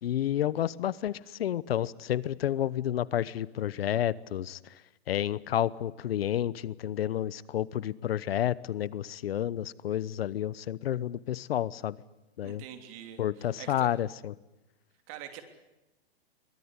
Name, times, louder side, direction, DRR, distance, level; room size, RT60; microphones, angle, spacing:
voice 1, 0.0-4.6 5.1-12.0 12.4-12.6 13.2-14.3, left 11 dB, 70° left, 20 dB, 0.9 m, -30 dB
voice 2, 12.4-13.9 15.1-15.4, right 11 dB, 35° right, 6 dB, 3.1 m, -45 dB
23.5 x 20.0 x 9.8 m, 1.0 s
hypercardioid pair, 165°, 31 cm